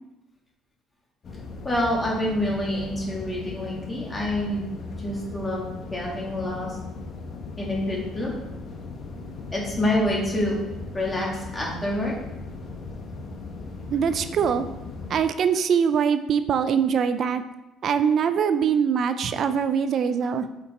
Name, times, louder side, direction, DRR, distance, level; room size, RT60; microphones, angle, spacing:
sound 1, 1.2-15.2, left 3 dB, 40° left, 1.1 m, -38 dB
voice 1, 1.6-4.7 5.0-5.6 5.9-6.7 7.6-8.3 9.5-10.6 10.9-12.1, left 1 dB, 15° left, -3 dB, 2.0 m, -27 dB
voice 2, 13.9-14.7 15.1-17.4 17.8-20.4, right 7 dB, 45° right, 11 dB, 0.5 m, -23 dB
7.7 x 5.2 x 4.3 m, 0.98 s
cardioid pair, 140°, 0 cm